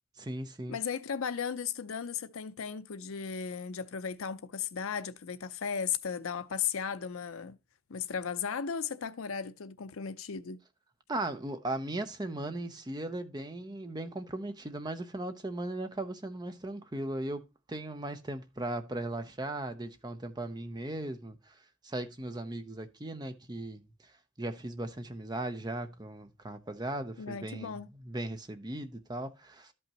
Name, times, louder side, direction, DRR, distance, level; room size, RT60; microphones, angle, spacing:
voice 1, 0.2-0.8 11.1-23.8 24.4-27.8 28.0-29.7, right 1 dB, 20° right, 0.7 m, -37 dB
voice 2, 0.7-7.6 7.9-10.6 27.2-27.9, left 7 dB, 70° left, 0.6 m, -36 dB
12.0 x 5.5 x 2.9 m
head